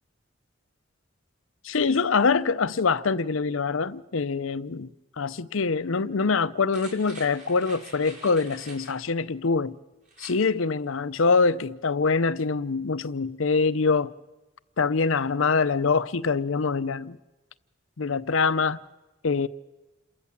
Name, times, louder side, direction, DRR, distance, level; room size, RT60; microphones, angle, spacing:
voice 1, 1.6-4.9 5.2-9.8 10.2-14.1 14.8-17.2 18.0-18.8 19.2-19.5, left 4 dB, 75° left, 0.7 m, -24 dB
sound 1, 6.7-9.0 10.1-10.4 10.8-10.9, right 3 dB, 40° right, 4.9 m, -46 dB
28.0 x 14.0 x 8.6 m
head